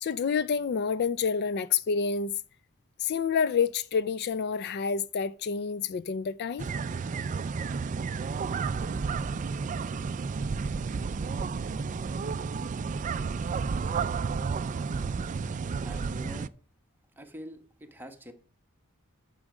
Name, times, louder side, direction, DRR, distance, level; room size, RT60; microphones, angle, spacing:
voice 1, 0.0-2.3 3.0-6.7, left 6 dB, 50° left, 0.4 m, -28 dB
sound 1, 6.6-16.5, right 5 dB, 35° right, 0.3 m, -31 dB
voice 2, 15.8-16.5 17.2-18.3, equal, 10° right, 1.0 m, -44 dB
9.8 x 6.4 x 4.9 m
head